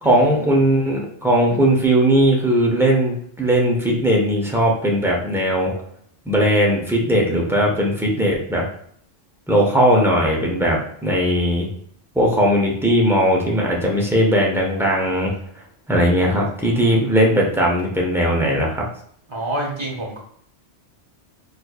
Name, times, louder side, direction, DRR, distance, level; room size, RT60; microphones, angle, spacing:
voice 1, 0.0-5.7 6.3-8.7 9.5-11.7 12.1-15.3 15.9-18.8, equal, 5° right, -3 dB, 0.4 m, -18 dB
voice 2, 19.3-20.2, right 1 dB, 25° right, -2 dB, 0.8 m, -27 dB
4.4 x 2.5 x 2.4 m, 0.63 s
omnidirectional pair, 1.3 m